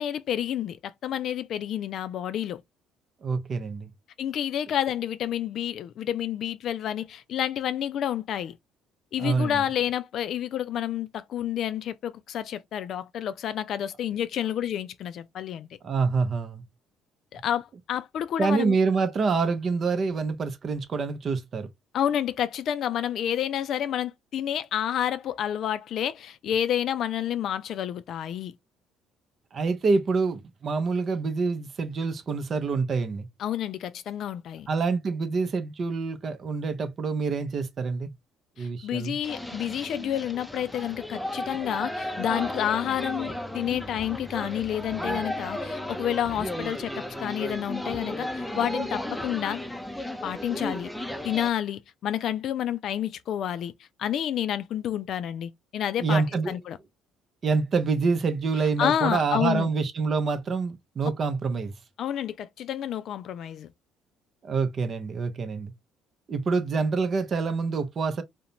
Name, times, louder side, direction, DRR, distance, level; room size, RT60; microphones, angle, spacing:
voice 1, 0.0-2.6 4.2-8.6 9.1-15.7 17.3-18.8 21.9-28.5 33.4-34.7 38.6-49.6 50.2-50.9 51.2-53.7 54.0-56.8 58.8-59.7 62.0-63.7, left 10 dB, 60° left, 0.3 m, -29 dB
voice 2, 3.2-3.9 9.2-9.6 15.8-16.6 18.4-21.7 29.5-33.3 34.7-38.1 38.6-39.2 56.0-56.5 57.4-61.7 64.4-65.7 66.3-68.2, right 4 dB, 45° right, 0.6 m, -26 dB
sound 1, 39.2-51.5, left 1 dB, 5° left, 0.5 m, -34 dB
2.5 x 2.1 x 2.8 m
hypercardioid pair, 60°, 0 cm